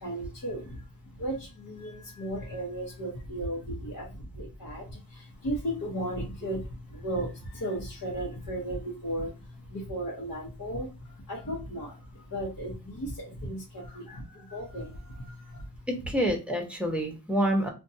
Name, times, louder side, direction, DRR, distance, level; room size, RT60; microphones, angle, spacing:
voice 1, 0.0-0.8 1.2-9.4 9.7-15.6, right 1 dB, 55° left, -4 dB, 0.9 m, -35 dB
voice 2, 15.9-17.7, equal, 5° right, 2 dB, 0.8 m, -27 dB
2.5 x 2.2 x 2.6 m, 0.29 s
wide cardioid pair, 75°, 40 cm